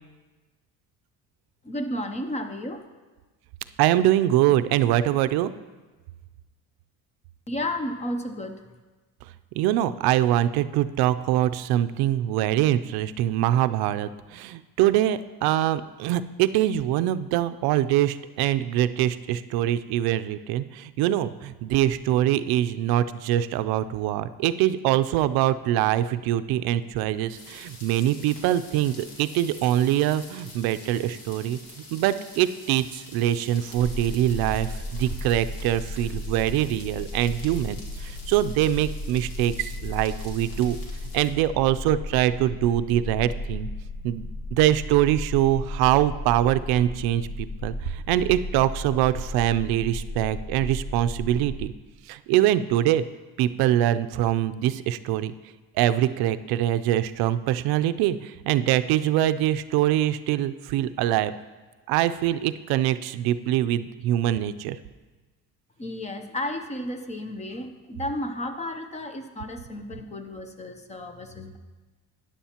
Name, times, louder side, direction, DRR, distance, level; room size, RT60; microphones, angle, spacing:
voice 1, 1.6-2.8 7.5-8.6 65.8-71.6, left 1 dB, 20° left, 7 dB, 0.6 m, -32 dB
voice 2, 3.8-5.5 9.5-31.6 31.9-40.8 41.1-43.7 44.0-51.7 52.1-53.0 53.4-55.3 55.8-61.3 61.9-64.8, right 12 dB, 75° right, 12 dB, 0.5 m, -24 dB
sound 1, 27.3-41.3, left 2 dB, 75° left, 2.2 m, -46 dB
sound 2, 33.7-51.7, left 1 dB, 50° left, 0.9 m, -35 dB
12.5 x 10.0 x 2.9 m, 1.2 s
cardioid pair, 140°, 38 cm